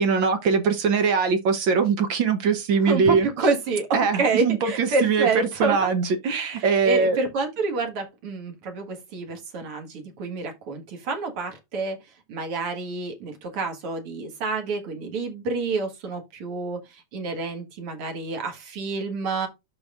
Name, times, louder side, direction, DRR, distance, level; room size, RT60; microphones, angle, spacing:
voice 1, 0.0-3.3 3.9-7.2, right 5 dB, 70° right, 1.1 m, -22 dB
voice 2, 2.8-5.9 6.5-12.0 12.3-19.5, right 3 dB, 55° right, 2.3 m, -28 dB
12.0 x 4.1 x 2.5 m
omnidirectional pair, 3.4 m